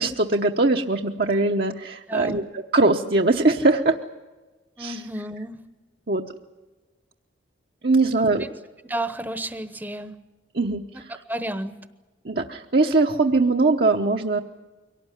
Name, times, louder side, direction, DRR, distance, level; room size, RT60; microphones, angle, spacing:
voice 1, 0.0-2.4 2.7-4.0 4.8-5.0 6.1-6.2 7.8-8.4 10.5-11.1 12.2-14.4, right 3 dB, 55° right, 1 dB, 1.0 m, -21 dB
voice 2, 2.1-2.4 4.8-5.7 8.1-8.5 8.8-10.2 10.9-11.8, right 1 dB, 10° right, 10 dB, 1.0 m, -32 dB
23.5 x 18.0 x 10.0 m, 1.2 s
head